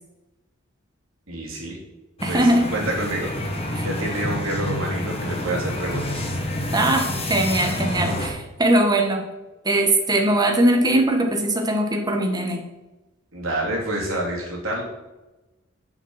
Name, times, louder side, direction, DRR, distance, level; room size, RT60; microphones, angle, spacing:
voice 1, 1.3-1.8 2.3-6.2 13.3-14.8, right 1 dB, 85° right, -2 dB, 3.0 m, -28 dB
sound 1, 2.2-8.3, left 1 dB, 30° left, 1.4 m, -28 dB
voice 2, 2.2-2.7 3.7-3.8 6.7-9.2 9.6-12.6, right 1 dB, 20° right, 3 dB, 1.3 m, -20 dB
7.2 x 7.1 x 6.4 m, 1.1 s
head